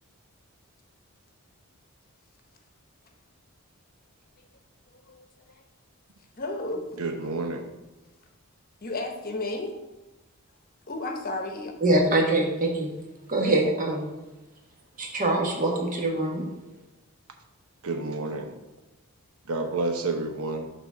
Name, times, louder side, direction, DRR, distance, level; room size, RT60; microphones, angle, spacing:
voice 1, 5.1-5.6 6.4-6.9 8.8-9.8 10.9-11.7, left 2 dB, 40° left, 4 dB, 0.9 m, -33 dB
voice 2, 7.0-7.7 17.8-18.5 19.5-20.7, right 3 dB, 75° right, 4 dB, 0.9 m, -29 dB
voice 3, 11.8-12.9 13.3-14.1 15.0-16.4, right 2 dB, 35° right, 1 dB, 1.2 m, -24 dB
6.7 x 4.1 x 6.1 m, 1.1 s
head